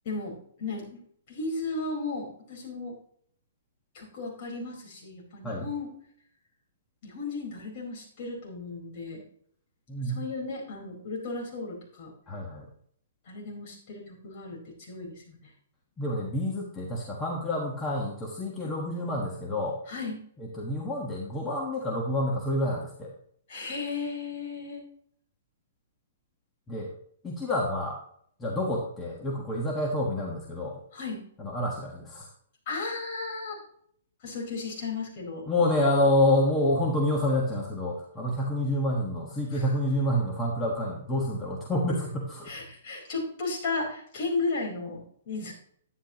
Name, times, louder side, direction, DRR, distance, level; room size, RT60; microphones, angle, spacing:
voice 1, 0.0-1.0 1.3-3.0 3.9-5.9 7.0-9.2 10.0-12.1 13.3-15.5 19.9-20.2 23.5-24.8 30.9-31.2 32.7-33.6 34.2-35.4 39.5-39.7 42.4-45.5, left 3 dB, 40° left, -2 dB, 4.6 m, -35 dB
voice 2, 12.3-12.7 16.0-19.8 20.4-23.1 26.7-26.9 27.2-28.0 28.4-30.8 31.4-32.3 35.5-42.6, left 1 dB, 15° left, -3 dB, 1.4 m, -28 dB
11.5 x 9.8 x 3.0 m, 0.64 s
hypercardioid pair, 155°, 0 cm